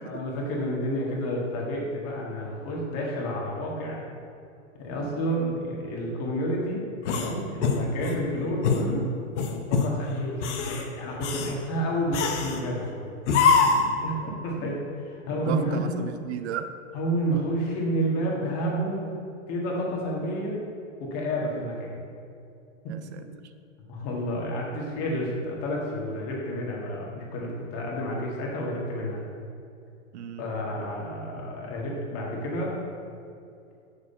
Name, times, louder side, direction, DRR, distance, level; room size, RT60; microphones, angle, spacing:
voice 1, 0.0-4.0 4.8-9.1 9.7-13.1 14.0-15.9 16.9-19.2 19.5-20.6 21.0-22.0 22.8-22.9 23.9-29.2 30.4-32.8, equal, 40° left, -2 dB, 1.8 m, -30 dB
sound 1, 7.0-8.2 8.6-8.9 9.4-9.9 10.3-10.8 11.2-11.6 12.1-12.6 13.3-13.9, left 5 dB, 60° left, 1.0 m, -24 dB
voice 2, 14.2-14.8 15.5-16.7 22.9-23.5 30.1-30.5, right 8 dB, 60° right, 10 dB, 0.5 m, -36 dB
6.5 x 4.8 x 5.5 m, 2.5 s
hypercardioid pair, 130°, 39 cm